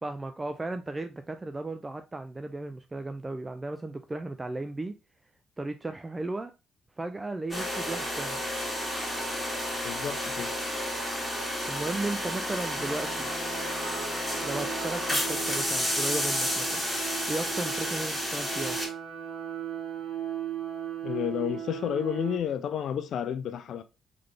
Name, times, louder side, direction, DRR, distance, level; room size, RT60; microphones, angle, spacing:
voice 1, 0.0-5.0 5.6-6.5 7.0-8.4 11.7-13.3 14.4-16.8 17.3-18.8, right 2 dB, 20° right, 0.3 m, -35 dB
sound 1, 7.5-18.9, equal, 5° left, 2.0 m, -31 dB
voice 2, 9.8-10.5 21.0-23.8, left 9 dB, 70° left, 0.3 m, -31 dB
sound 2, 12.8-22.4, right 9 dB, 70° right, 1.2 m, -38 dB
3.8 x 3.3 x 3.3 m
cardioid pair, 90°, 0 cm